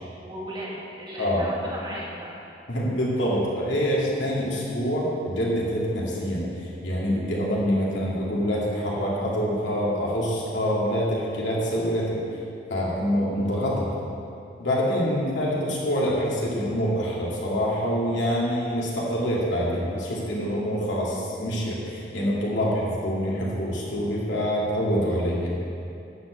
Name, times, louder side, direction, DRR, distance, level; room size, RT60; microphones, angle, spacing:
voice 1, 0.2-2.3, right 1 dB, 25° right, -6 dB, 2.1 m, -36 dB
voice 2, 2.7-12.2 12.7-13.9 14.6-25.5, equal, 90° left, -5 dB, 2.6 m, -26 dB
11.0 x 5.3 x 7.9 m, 2.6 s
head